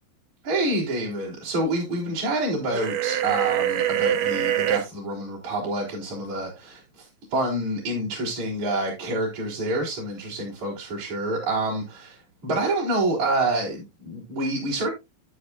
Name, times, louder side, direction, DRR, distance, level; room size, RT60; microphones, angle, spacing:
voice 1, 0.4-6.8 7.3-14.9, right 2 dB, 40° right, 4.6 m, -27 dB
sound 1, 2.7-4.8, right 11 dB, 80° right, 2.3 m, -24 dB
11.5 x 8.3 x 2.4 m
omnidirectional pair, 5.8 m